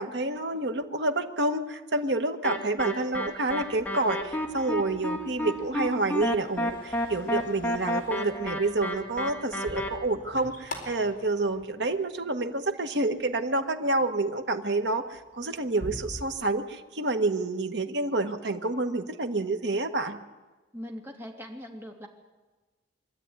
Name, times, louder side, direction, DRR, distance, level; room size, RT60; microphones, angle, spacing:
voice 1, 0.0-20.2, right 2 dB, 65° right, 6 dB, 1.5 m, -28 dB
sound 1, 2.4-9.9, left 1 dB, 10° left, 1.9 m, -31 dB
sound 2, 3.6-12.6 13.0-13.5 14.0-14.2 14.5-16.2, left 1 dB, 45° left, 4.3 m, -46 dB
voice 2, 20.7-22.1, equal, 15° right, 1 dB, 2.7 m, -40 dB
24.5 x 13.0 x 9.6 m, 1.3 s
head